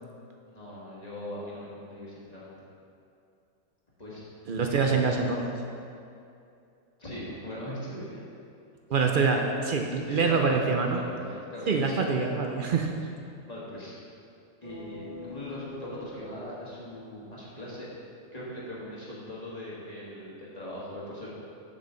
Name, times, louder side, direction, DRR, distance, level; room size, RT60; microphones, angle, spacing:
voice 1, 0.4-2.6 4.0-4.2 4.6-5.0 7.0-8.2 10.0-12.0 13.4-13.9 14.6-17.9 18.3-21.3, left 1 dB, 30° left, -7 dB, 1.6 m, -40 dB
voice 2, 4.5-5.6 8.9-11.0 11.7-13.0, right 4 dB, 60° right, 2 dB, 0.5 m, -25 dB
sound 1, 14.6-17.7, left 4 dB, 30° right, 1.1 m, -45 dB
7.5 x 6.3 x 3.8 m, 2.6 s
omnidirectional pair, 1.4 m